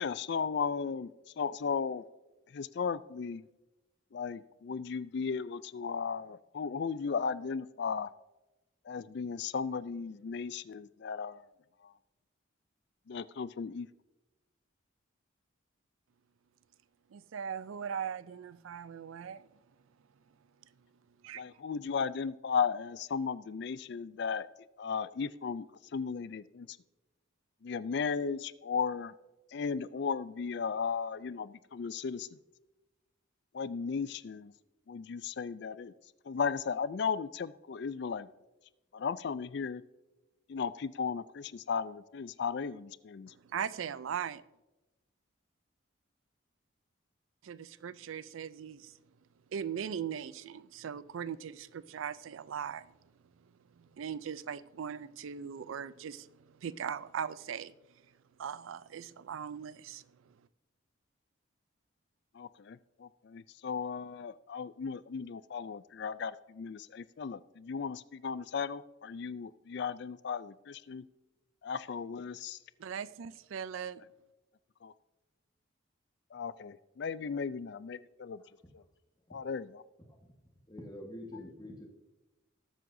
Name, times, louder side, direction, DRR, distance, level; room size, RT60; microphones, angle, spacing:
voice 1, 0.0-2.1 2.5-3.4 4.1-8.1 8.9-11.4 13.1-13.9 21.4-24.5 24.8-25.7 25.9-26.7 27.6-29.1 29.5-32.3 33.5-34.5 34.9-35.9 36.3-38.3 38.9-39.8 40.5-43.3 62.4-71.0 71.6-72.6 74.8-74.9 76.3-78.4 79.3-79.8, left 6 dB, 55° left, 17 dB, 0.4 m, -35 dB
voice 2, 17.1-19.5 21.2-21.4 43.3-44.4 47.4-49.0 49.5-52.9 53.4-53.5 53.8-57.7 58.4-60.3 72.8-74.0, right 7 dB, 80° right, 17 dB, 0.4 m, -39 dB
voice 3, 80.0-80.3 80.7-81.9, left 1 dB, 20° left, 0 dB, 1.4 m, -46 dB
19.5 x 7.6 x 2.6 m, 1.1 s
head